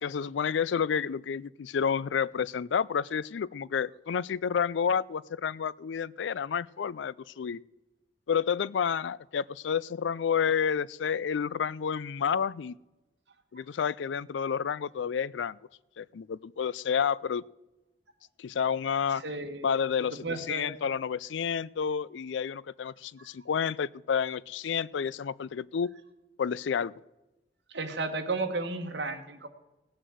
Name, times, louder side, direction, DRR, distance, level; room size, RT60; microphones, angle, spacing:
voice 1, 0.0-7.6 8.3-12.8 13.5-15.6 16.0-17.4 18.4-19.2 19.6-20.2 20.5-25.9 26.4-26.9, left 7 dB, 85° left, 22 dB, 0.4 m, -30 dB
voice 2, 19.2-19.7 20.0-20.7 23.2-23.3 27.7-29.5, right 3 dB, 75° right, 6 dB, 1.6 m, -33 dB
17.5 x 6.3 x 7.8 m, 1.0 s
head